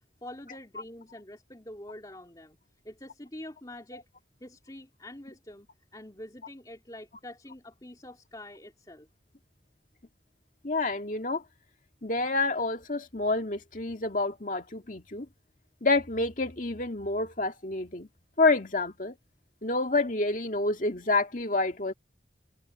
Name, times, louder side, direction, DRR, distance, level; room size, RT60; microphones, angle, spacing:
voice 1, 0.2-2.6 2.8-4.1 4.4-9.1, left 1 dB, 20° left, 3.0 m, -46 dB
voice 2, 10.6-11.4 12.0-15.3 15.8-18.1 18.4-19.2 19.6-21.9, left 3 dB, 45° left, 2.1 m, -28 dB
head